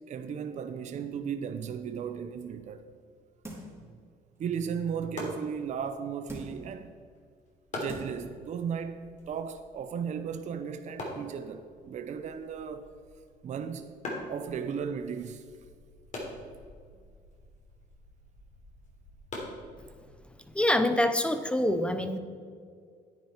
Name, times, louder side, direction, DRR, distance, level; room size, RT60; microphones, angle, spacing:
voice 1, 0.1-2.8 4.4-6.9 7.7-12.9 13.4-13.9 14.3-15.5, right 7 dB, 45° right, 0.6 m, -35 dB
sound 1, 3.4-3.9 4.4-4.5 6.3-6.7 7.4-7.5 7.9-8.3 8.7-8.8, equal, 15° right, 3.0 m, -43 dB
sound 2, 4.5-20.3, left 1 dB, 45° left, 3.2 m, -45 dB
voice 2, 20.5-22.2, left 1 dB, 5° left, 0.8 m, -25 dB
10.5 x 9.2 x 4.4 m
cardioid pair, 110°, 17 cm